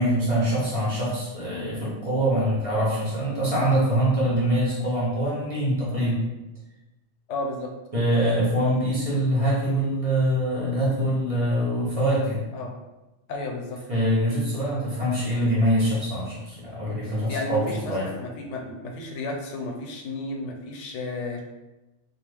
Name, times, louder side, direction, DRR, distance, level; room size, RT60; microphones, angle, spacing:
voice 1, 0.0-6.2 7.9-12.4 13.9-18.1, right 1 dB, 30° right, -7 dB, 0.9 m, -24 dB
voice 2, 7.3-7.7 12.5-12.7 13.3-13.8 17.3-21.4, left 2 dB, 75° left, 1 dB, 0.9 m, -33 dB
2.9 x 2.3 x 3.4 m, 1.0 s
omnidirectional pair, 1.2 m